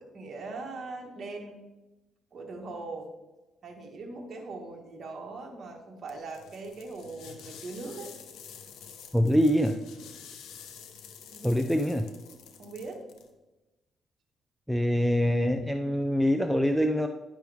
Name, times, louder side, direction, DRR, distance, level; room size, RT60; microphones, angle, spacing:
voice 1, 0.0-1.6 2.3-3.1 3.6-8.1 11.3-11.6 12.6-13.0, right 3 dB, 45° right, 0 dB, 1.5 m, -40 dB
sound 1, 6.1-13.3, left 7 dB, 85° left, 0.8 m, -49 dB
voice 2, 9.1-9.8 11.4-12.1 14.7-17.1, equal, ahead, 6 dB, 0.5 m, -24 dB
10.0 x 6.1 x 3.5 m, 1.1 s
cardioid pair, 90°, 0 cm